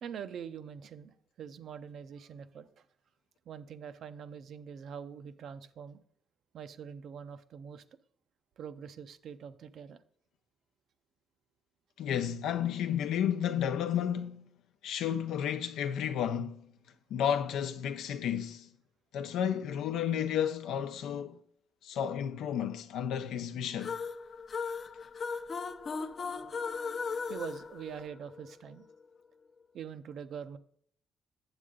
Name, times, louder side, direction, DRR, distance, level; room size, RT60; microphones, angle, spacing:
voice 1, 0.0-2.8 3.5-6.0 6.5-7.8 8.6-10.0 27.3-28.8 29.7-30.6, right 7 dB, 65° right, 0.6 m, -44 dB
voice 2, 12.0-14.5 14.8-16.6 17.1-18.7 19.1-21.4 21.8-24.0, left 9 dB, 85° left, 0.6 m, -32 dB
sound 1, 23.8-28.5, left 5 dB, 45° left, 0.6 m, -37 dB
8.1 x 7.5 x 3.7 m
cardioid pair, 90°, 0 cm